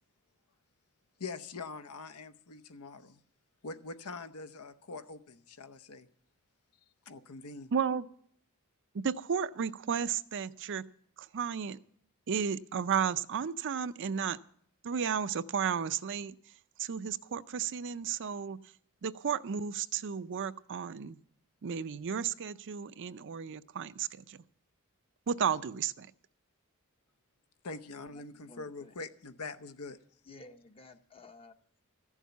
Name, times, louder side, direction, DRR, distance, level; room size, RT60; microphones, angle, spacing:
voice 1, 1.2-3.2 3.6-6.1 7.1-7.7 27.6-30.0, left 3 dB, 80° left, 11 dB, 0.8 m, -44 dB
voice 2, 7.7-8.1 8.9-10.8 11.2-11.8 12.3-14.4 14.8-16.3 16.8-18.6 19.0-21.2 21.6-24.4 25.3-26.1, right 7 dB, 55° right, 14 dB, 0.5 m, -33 dB
voice 3, 28.1-28.9 30.3-31.5, left 2 dB, 25° left, 8 dB, 0.7 m, -53 dB
14.5 x 7.3 x 8.2 m, 0.63 s
head